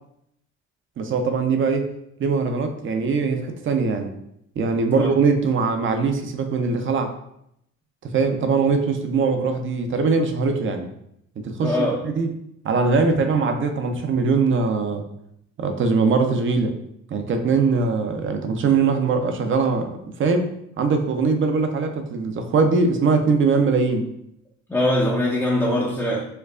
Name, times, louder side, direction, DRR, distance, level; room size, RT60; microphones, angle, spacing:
voice 1, 1.0-1.9 2.2-4.1 4.6-7.1 8.0-10.9 11.4-12.3 12.6-15.0 15.6-16.8 17.1-20.5 20.8-24.1, right 4 dB, 40° right, 6 dB, 0.5 m, -21 dB
voice 2, 11.6-12.0 24.7-26.2, left 1 dB, 10° left, -5 dB, 0.5 m, -22 dB
4.4 x 2.3 x 2.4 m, 0.76 s
cardioid pair, 85°, 32 cm